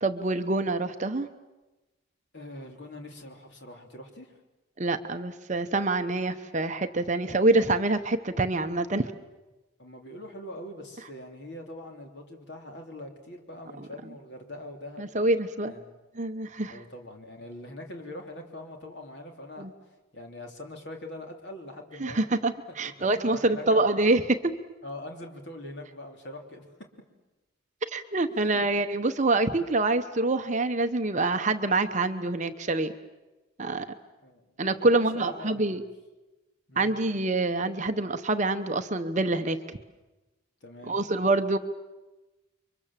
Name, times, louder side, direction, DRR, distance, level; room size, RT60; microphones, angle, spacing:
voice 1, 0.0-1.3 4.8-9.1 15.0-15.7 16.2-16.8 19.6-19.7 22.0-24.6 27.9-32.9 33.6-33.9 34.6-35.8 36.8-39.6 40.9-41.6, right 2 dB, 35° right, 8 dB, 0.9 m, -26 dB
voice 2, 2.3-4.4 9.8-15.1 15.7-15.9 16.7-19.7 20.1-22.2 22.8-22.9 23.2-23.8 24.8-26.6 28.3-28.7 34.2-34.5 34.7-35.7 36.7-36.9 40.6-40.9, left 1 dB, 55° left, 2 dB, 3.2 m, -43 dB
30.0 x 24.0 x 7.4 m, 1.1 s
head